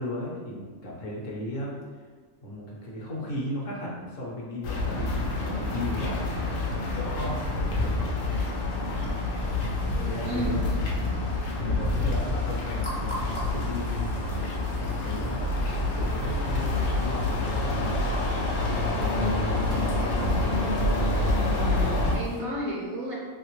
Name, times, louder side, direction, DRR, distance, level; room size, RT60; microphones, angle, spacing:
voice 1, 0.0-1.7 2.4-6.3 6.7-8.0 10.1-10.9 11.6-15.5 15.9-19.7, left 1 dB, 65° left, -4 dB, 1.1 m, -36 dB
sound 1, 4.6-22.2, left 2 dB, 85° left, 1.1 m, -27 dB
voice 2, 10.2-10.7 21.2-23.1, equal, 65° right, -3 dB, 0.8 m, -33 dB
sound 2, 11.8-22.4, equal, 25° left, 0.5 m, -45 dB
3.0 x 2.8 x 3.0 m, 1.5 s
omnidirectional pair, 1.5 m